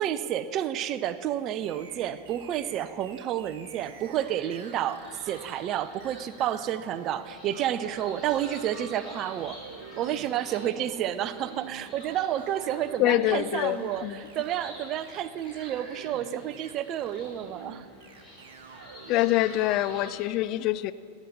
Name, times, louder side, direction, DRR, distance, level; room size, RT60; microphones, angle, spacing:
voice 1, 0.0-9.6 10.0-17.9, right 11 dB, 35° right, 14 dB, 0.5 m, -30 dB
sound 1, 1.6-20.1, right 6 dB, 50° right, 1.2 m, -48 dB
sound 2, 4.2-20.1, left 1 dB, 15° left, 3.2 m, -49 dB
voice 2, 13.0-13.8 14.0-14.1 19.1-20.9, left 15 dB, 40° left, 15 dB, 0.3 m, -25 dB
17.5 x 7.3 x 6.5 m, 2.3 s
figure-of-eight pair, 90°, 0 cm